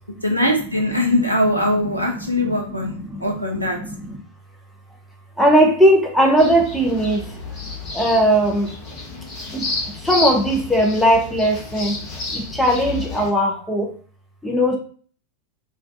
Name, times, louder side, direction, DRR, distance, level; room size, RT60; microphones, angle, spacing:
voice 1, 0.2-2.9 3.2-3.8, left 1 dB, 90° left, 0 dB, 0.5 m, -21 dB
voice 2, 1.8-4.2 5.4-7.2 7.9-8.7 9.5-9.6 10.0-12.0 12.3-13.9 14.4-14.8, equal, ahead, -1 dB, 0.5 m, -19 dB
sound 1, 6.4-13.3, left 3 dB, 35° left, 0.8 m, -30 dB
2.3 x 2.2 x 2.5 m, 0.43 s
figure-of-eight pair, 90°, 0 cm